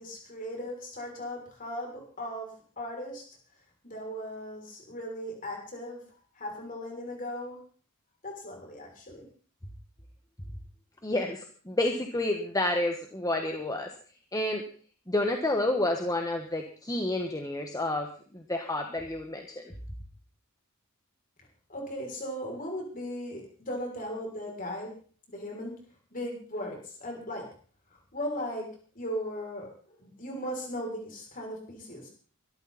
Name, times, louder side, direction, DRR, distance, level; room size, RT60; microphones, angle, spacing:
voice 1, 0.0-2.5 2.8-3.2 3.8-6.0 6.3-7.6 8.2-9.3 21.7-24.9 25.3-25.7 26.1-27.4 27.9-28.7 28.9-32.1, equal, 40° left, 0 dB, 6.7 m, -37 dB
voice 2, 11.0-13.9 14.3-14.6 15.1-19.7, left 1 dB, 15° left, 4 dB, 1.5 m, -30 dB
23.5 x 13.5 x 4.3 m, 0.42 s
head